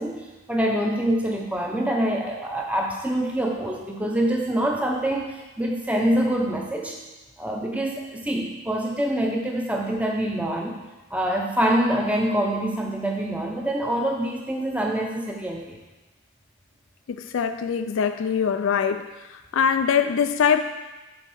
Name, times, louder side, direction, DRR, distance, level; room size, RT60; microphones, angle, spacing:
voice 1, 0.0-7.0 7.4-10.8 11.1-15.8, right 1 dB, 5° right, 0 dB, 0.7 m, -25 dB
voice 2, 17.1-19.1 19.5-20.6, left 7 dB, 60° left, 9 dB, 0.3 m, -22 dB
7.3 x 4.2 x 5.4 m, 1.1 s
head